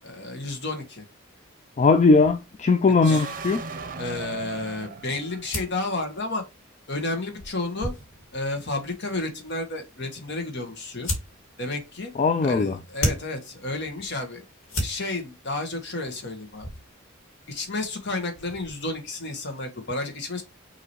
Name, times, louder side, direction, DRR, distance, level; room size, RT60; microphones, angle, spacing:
voice 1, 0.0-1.0 3.0-3.3 4.0-6.4 6.9-7.9 8.3-11.1 11.6-12.1 12.4-14.4 14.8-16.7 17.5-20.4, left 2 dB, 55° left, 1.4 m, -31 dB
voice 2, 1.8-3.6 12.2-12.8, left 4 dB, 35° left, 0.4 m, -19 dB
sound 1, 2.9-5.9, right 4 dB, 40° right, 0.7 m, -37 dB
sound 2, 5.4-19.0, left 1 dB, 75° left, 1.9 m, -38 dB
5.9 x 2.9 x 3.1 m
head